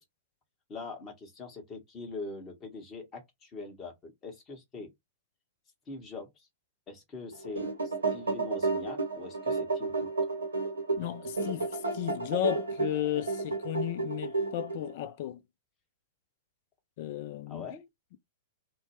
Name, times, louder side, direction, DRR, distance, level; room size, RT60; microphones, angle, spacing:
voice 1, 0.7-4.9 5.9-6.5 6.9-10.1 17.5-17.8, left 3 dB, 25° left, 1.3 m, -43 dB
sound 1, 7.3-14.9, right 3 dB, 75° right, 0.9 m, -32 dB
voice 2, 11.0-15.4 17.0-17.7, left 13 dB, 50° left, 0.4 m, -34 dB
2.8 x 2.2 x 3.0 m
figure-of-eight pair, 100°, 0 cm